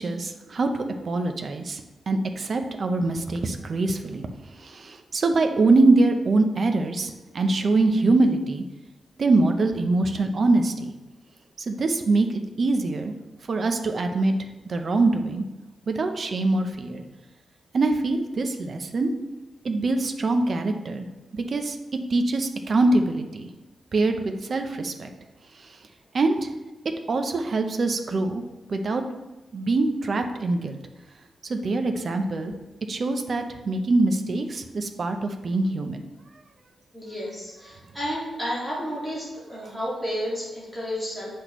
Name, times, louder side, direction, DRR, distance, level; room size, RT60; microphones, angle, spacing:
voice 1, 0.0-4.3 4.6-8.6 9.2-10.9 11.7-13.1 13.5-14.3 14.7-15.4 15.9-17.0 17.7-19.1 19.6-21.1 21.3-21.8 22.1-23.5 23.9-25.1 26.1-26.5 27.1-28.4 28.7-29.0 29.5-30.8 31.5-32.5 32.9-36.0, right 2 dB, 40° right, 6 dB, 0.6 m, -23 dB
voice 2, 36.9-41.3, equal, 5° right, -8 dB, 2.1 m, -31 dB
8.3 x 6.0 x 3.0 m, 1.1 s
wide cardioid pair, 175°, 0 cm